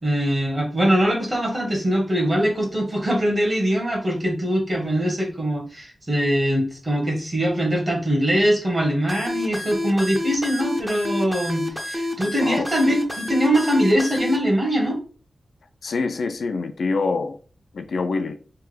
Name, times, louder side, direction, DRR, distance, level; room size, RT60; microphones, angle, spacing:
voice 1, 0.0-15.0, equal, 25° right, 1.1 m, -22 dB
sound 1, 9.1-14.4, left 1 dB, 5° right, 0.6 m, -28 dB
voice 2, 15.8-17.4 17.7-18.4, left 4 dB, 75° left, 0.3 m, -25 dB
3.3 x 2.2 x 3.2 m
wide cardioid pair, 145°, 0 cm